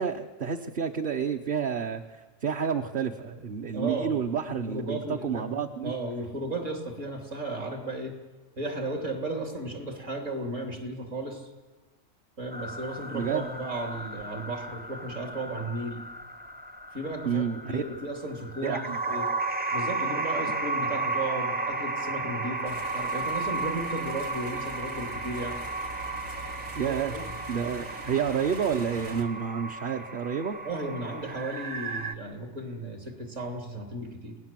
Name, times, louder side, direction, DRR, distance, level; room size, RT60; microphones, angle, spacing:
voice 1, 0.0-2.0 2.4-5.9 13.1-13.5 17.2-17.8 18.6-19.2 26.8-27.1 27.5-30.6, right 7 dB, 45° right, 3 dB, 1.0 m, -29 dB
voice 2, 3.7-8.1 8.6-11.5 12.4-16.0 16.9-19.3 19.7-25.6 26.8-27.2 30.6-34.4, right 2 dB, 65° right, 3 dB, 3.5 m, -35 dB
sound 1, 12.5-32.1, right 3 dB, 10° right, 0.4 m, -34 dB
sound 2, 22.7-29.2, right 1 dB, 85° right, 3.0 m, -44 dB
28.0 x 18.5 x 7.6 m, 1.3 s
omnidirectional pair, 1.4 m